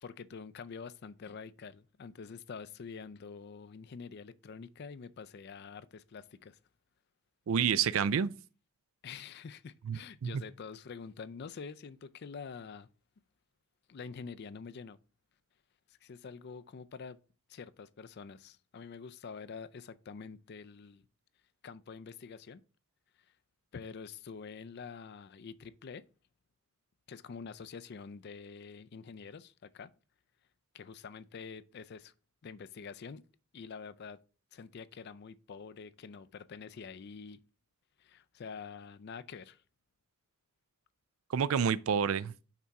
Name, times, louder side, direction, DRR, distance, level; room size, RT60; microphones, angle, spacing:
voice 1, 0.0-6.6 9.0-12.9 13.9-15.0 16.0-17.2 17.5-21.0 21.6-22.6 23.7-26.0 27.1-29.9 30.7-32.1 32.4-33.2 33.5-34.2 34.5-37.4 38.0-39.6, left 5 dB, 50° left, 0.4 m, -46 dB
voice 2, 7.5-8.3 9.9-10.3 41.3-42.3, right 7 dB, 80° right, 0.4 m, -29 dB
5.9 x 4.1 x 4.6 m
head